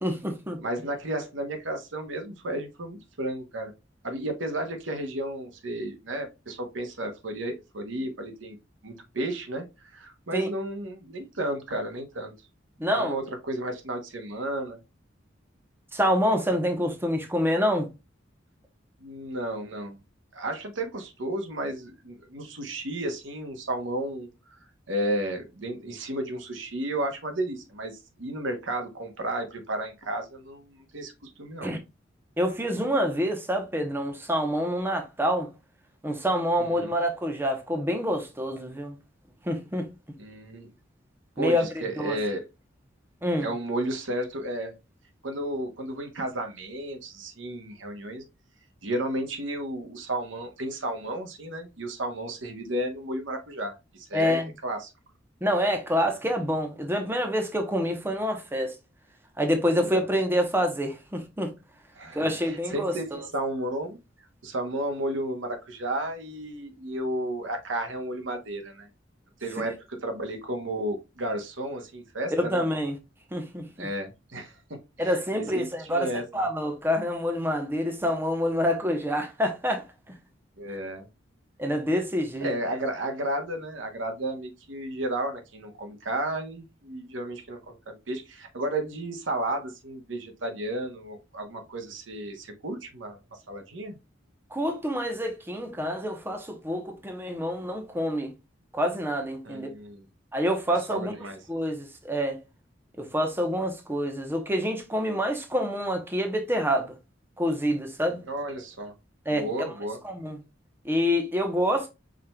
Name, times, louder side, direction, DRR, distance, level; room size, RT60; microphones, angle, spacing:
voice 1, 0.0-0.6 10.3-10.5 12.8-13.2 15.9-17.9 31.6-31.8 32.4-35.5 36.0-38.9 39.4-39.9 41.4-41.6 42.0-42.2 43.2-43.5 54.1-54.5 55.4-58.7 59.4-61.5 62.1-63.3 72.3-73.0 73.3-73.9 75.0-80.1 81.6-82.5 94.5-98.3 98.7-99.7 100.3-101.1 101.5-102.4 103.0-106.9 107.4-108.2 109.3-109.7 110.0-110.4 110.8-111.9, equal, 10° right, 0.8 m, -27 dB
voice 2, 0.6-3.7 4.0-8.6 8.8-9.7 9.9-12.3 13.0-14.8 19.0-20.0 20.3-24.3 24.9-31.7 36.6-36.9 40.2-40.7 41.4-42.4 43.4-44.7 45.2-48.2 48.8-54.9 59.8-60.0 62.0-64.0 64.4-68.9 69.4-72.6 73.8-74.5 75.0-76.5 80.6-81.1 82.4-93.2 93.5-94.0 99.4-100.0 100.7-101.4 108.3-108.9 109.3-110.0, right 1 dB, 80° right, 1.0 m, -33 dB
5.0 x 4.3 x 2.3 m
head